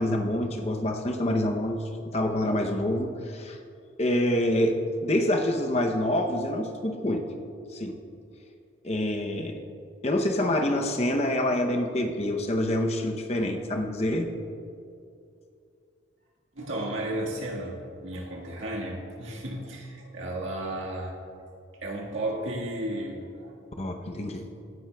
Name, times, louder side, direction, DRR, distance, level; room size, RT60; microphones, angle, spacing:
voice 1, 0.0-3.6 4.0-7.2 7.7-8.0 8.8-9.6 10.0-14.3 23.8-24.4, left 1 dB, 30° left, 4 dB, 0.6 m, -26 dB
voice 2, 16.5-21.2 21.8-23.5, right 1 dB, 75° right, -2 dB, 1.6 m, -33 dB
16.0 x 10.5 x 2.3 m, 2.5 s
head